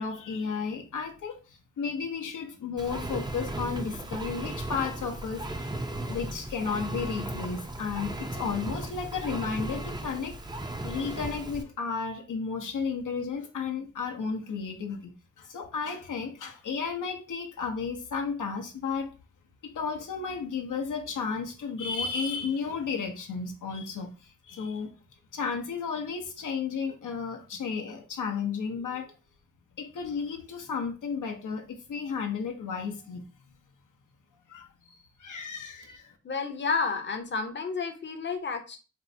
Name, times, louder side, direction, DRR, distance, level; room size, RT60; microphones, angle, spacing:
voice 1, 0.0-10.4 10.8-15.1 15.4-19.1 19.6-24.9 25.3-29.1 29.8-33.2 34.5-36.1, left 5 dB, 80° left, 3 dB, 0.6 m, -33 dB
Engine, 2.8-11.6, right 1 dB, 15° right, 0.5 m, -36 dB
voice 2, 36.2-38.8, left 4 dB, 40° left, 6 dB, 0.7 m, -31 dB
4.3 x 2.0 x 2.5 m, 0.33 s
cardioid pair, 50°, 31 cm